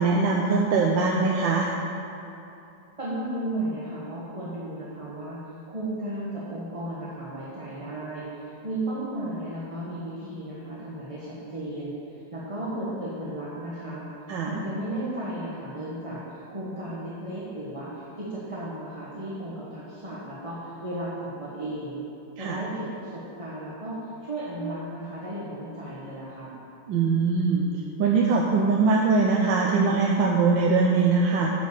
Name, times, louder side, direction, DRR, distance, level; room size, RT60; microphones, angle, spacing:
voice 1, 0.0-1.7 14.3-14.5 22.4-22.6 26.9-27.7 28.0-31.5, right 4 dB, 75° right, -1 dB, 1.4 m, -22 dB
voice 2, 3.0-5.4 5.7-11.9 12.3-14.1 14.4-22.0 22.4-26.5, right 1 dB, 20° right, -8 dB, 1.2 m, -34 dB
9.1 x 5.2 x 6.8 m, 2.8 s
omnidirectional pair, 2.1 m